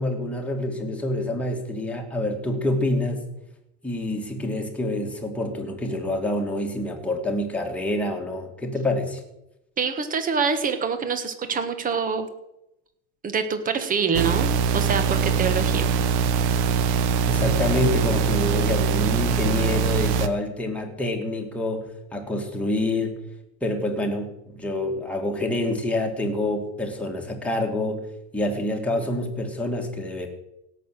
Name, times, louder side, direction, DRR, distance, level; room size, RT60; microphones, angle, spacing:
voice 1, 0.0-3.2 3.8-9.2 17.3-23.2 23.6-28.0 28.3-30.3, left 1 dB, 5° left, 1 dB, 2.2 m, -27 dB
voice 2, 9.8-12.3 13.2-15.9, right 5 dB, 25° right, 9 dB, 1.6 m, -25 dB
sound 1, 14.1-20.3, right 6 dB, 70° right, 1.3 m, -22 dB
17.0 x 6.8 x 7.6 m, 0.86 s
supercardioid pair, 140°, 35 cm